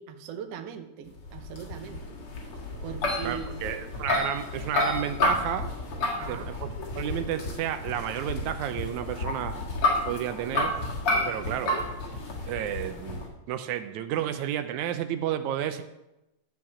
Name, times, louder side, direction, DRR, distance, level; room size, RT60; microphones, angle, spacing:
voice 1, 0.0-2.0 2.8-3.5 6.0-6.6, right 8 dB, 70° right, 6 dB, 1.7 m, -40 dB
sound 1, 1.2-13.3, left 2 dB, 50° left, 2.4 m, -31 dB
voice 2, 3.2-5.7 6.3-9.5 10.1-10.7 11.2-11.7 12.5-15.8, right 10 dB, 85° right, 9 dB, 2.0 m, -31 dB
12.0 x 4.7 x 7.3 m, 0.92 s
omnidirectional pair, 3.4 m